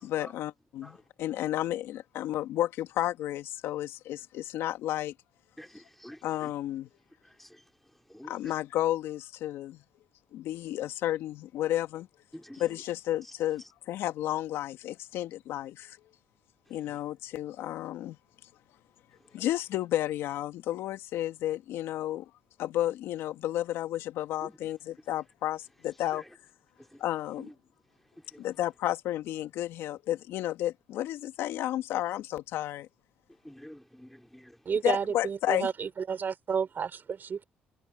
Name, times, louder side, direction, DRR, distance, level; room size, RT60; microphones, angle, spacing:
voice 1, 0.0-5.1 6.2-6.9 8.2-9.8 10.3-12.1 12.6-16.0 16.7-18.2 19.3-22.3 22.6-26.2 27.0-27.5 28.4-32.9 34.8-35.7, left 13 dB, 80° left, 2.2 m, -32 dB
voice 2, 5.6-6.5 7.4-7.5 8.1-8.5 12.3-12.6 24.4-24.5 27.4-27.5 33.4-34.5, equal, 5° left, 3.2 m, -47 dB
voice 3, 34.7-37.4, right 6 dB, 50° right, 4.0 m, -31 dB
supercardioid pair, 60°, 4 cm